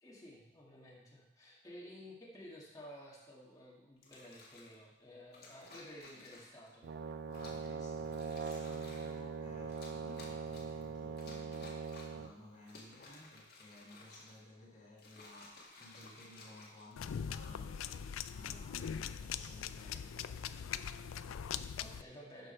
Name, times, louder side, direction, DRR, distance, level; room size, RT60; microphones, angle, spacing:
voice 1, 0.0-6.9 18.4-18.7 21.8-22.5, equal, 20° left, -4 dB, 1.8 m, -53 dB
sound 1, 4.0-4.8 5.3-6.7 7.3-7.7 8.0-9.2 9.7-10.8 11.2-12.2 12.6-14.5 14.9-17.3 18.1-18.4, left 3 dB, 50° left, 1.7 m, -56 dB
Brass instrument, 6.8-12.3, right 6 dB, 55° right, 0.3 m, -41 dB
voice 2, 7.3-21.6, left 1 dB, 35° left, -5 dB, 1.6 m, -58 dB
sound 2, 17.0-22.0, left 8 dB, 85° left, 0.4 m, -41 dB
12.0 x 5.0 x 4.4 m, 0.91 s
head